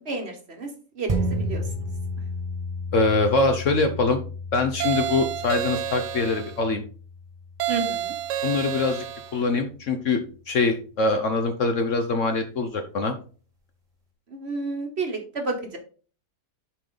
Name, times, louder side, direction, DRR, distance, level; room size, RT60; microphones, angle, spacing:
voice 1, 0.0-1.7 7.7-8.1 14.3-15.8, right 3 dB, 40° right, 4 dB, 1.3 m, -31 dB
sound 1, 1.1-9.9 10.3-10.4, equal, 25° right, 1.5 m, -33 dB
voice 2, 2.9-4.2 4.5-6.8 8.4-9.0 9.3-13.1, left 3 dB, 60° left, 6 dB, 1.0 m, -23 dB
sound 2, 4.8-6.6 7.6-9.4, right 10 dB, 80° right, 1.3 m, -29 dB
7.2 x 5.1 x 3.9 m, 0.39 s
omnidirectional pair, 1.8 m